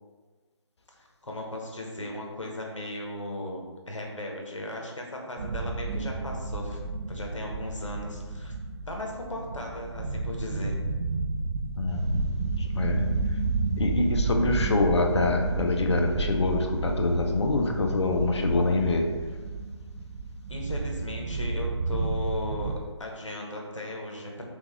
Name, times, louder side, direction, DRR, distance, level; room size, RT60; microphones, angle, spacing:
voice 1, 1.2-3.6 3.9-6.8 7.1-8.5 8.9-10.8 20.5-22.7 23.0-24.4, left 1 dB, 85° left, 0 dB, 1.0 m, -36 dB
sound 1, 5.4-22.8, right 3 dB, 75° right, 0.4 m, -31 dB
voice 2, 11.8-13.4 13.8-19.1, left 2 dB, 65° left, 3 dB, 0.6 m, -26 dB
3.6 x 3.6 x 3.1 m, 1.4 s
figure-of-eight pair, 150°, 16 cm